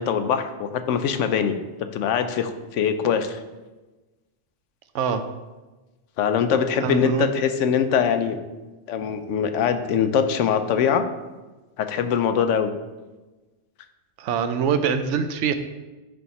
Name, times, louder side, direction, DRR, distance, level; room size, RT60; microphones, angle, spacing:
voice 1, 0.0-1.6 1.9-3.4 6.2-8.4 8.9-11.0 11.8-12.7, left 7 dB, 85° left, 9 dB, 1.0 m, -22 dB
voice 2, 6.8-7.3 14.2-15.5, right 7 dB, 80° right, 9 dB, 0.9 m, -24 dB
9.8 x 3.4 x 4.2 m, 1.2 s
omnidirectional pair, 1.2 m